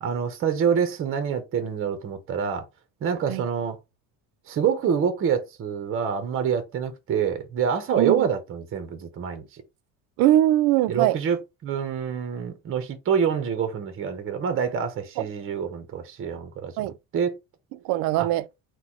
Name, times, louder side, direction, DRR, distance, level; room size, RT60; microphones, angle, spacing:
voice 1, 0.0-2.6 3.0-3.8 4.5-9.6 10.9-17.4 18.2-18.3, right 7 dB, 35° right, 0.8 m, -26 dB
voice 2, 10.2-11.2 15.2-15.3 16.8-16.9 17.8-18.4, right 14 dB, 85° right, 0.5 m, -21 dB
4.0 x 2.3 x 4.4 m
cardioid pair, 160°, 35 cm